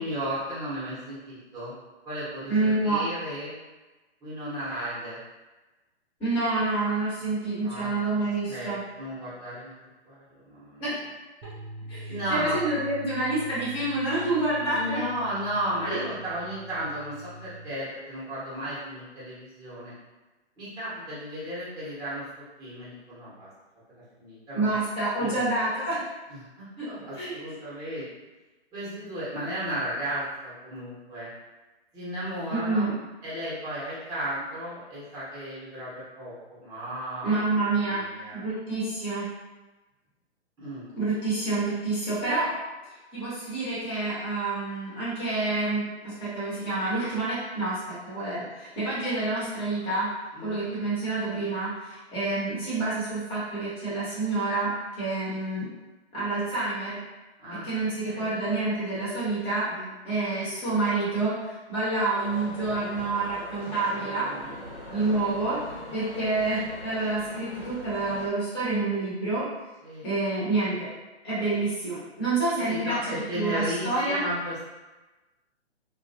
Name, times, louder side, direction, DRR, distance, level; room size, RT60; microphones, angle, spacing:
voice 1, 0.0-1.8 2.0-3.5 4.2-5.2 7.6-7.9 8.5-9.8 10.0-10.9 12.1-12.6 14.7-19.9 20.6-23.5 24.2-24.8 25.2-25.5 26.3-26.4 26.9-28.1 28.7-31.3 31.9-32.9 33.2-38.4 40.6-40.9 50.3-50.6 51.3-51.5 55.3-55.4 57.4-58.3 59.7-59.9 60.6-60.8 63.9-64.6 64.9-65.6 69.8-70.1 72.6-74.6, equal, 10° right, -10 dB, 0.9 m, -35 dB
voice 2, 2.5-3.0 6.2-8.8 10.8-10.9 11.9-15.0 15.8-16.0 24.5-26.0 26.8-26.9 27.1-27.4 32.5-32.9 37.2-38.0 38.3-39.3 40.9-42.5 43.1-50.1 50.4-54.7 55.0-55.6 56.1-57.0 57.6-59.6 60.0-64.3 64.9-65.6 65.9-69.4 70.0-70.9 71.2-74.2, right 2 dB, 15° left, -10 dB, 0.9 m, -28 dB
sound 1, 11.4-17.7, right 1 dB, 40° right, 0.5 m, -43 dB
sound 2, 62.1-68.3, left 1 dB, 90° left, 1.0 m, -41 dB
2.2 x 2.2 x 2.6 m, 1.1 s
hypercardioid pair, 130°, 34 cm